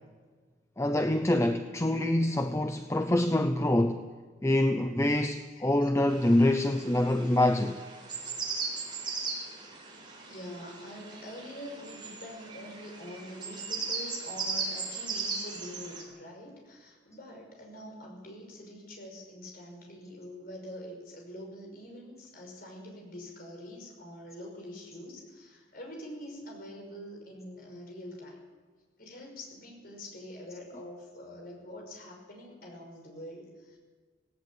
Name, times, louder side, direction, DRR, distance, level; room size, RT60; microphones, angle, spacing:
voice 1, 0.8-4.0 4.4-7.8, left 1 dB, 15° left, 8 dB, 0.7 m, -25 dB
voice 2, 5.5-5.9 7.2-7.3 10.2-28.4 29.0-33.8, left 1 dB, 55° left, 1 dB, 5.9 m, -45 dB
sound 1, 6.1-16.0, right 4 dB, 25° right, 4.7 m, -38 dB
17.5 x 17.5 x 8.7 m, 1.5 s
head